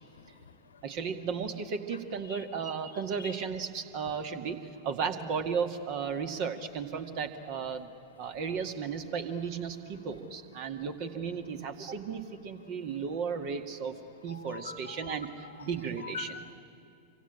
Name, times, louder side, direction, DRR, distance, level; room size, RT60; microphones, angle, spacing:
voice 1, 0.8-7.9 8.2-13.9 14.2-15.3 15.6-16.3, right 6 dB, 45° right, 7 dB, 2.0 m, -34 dB
voice 2, 14.3-15.7 16.0-16.5, left 6 dB, 70° left, 11 dB, 1.3 m, -43 dB
27.0 x 25.0 x 8.9 m, 2.7 s
figure-of-eight pair, 90°, 0 cm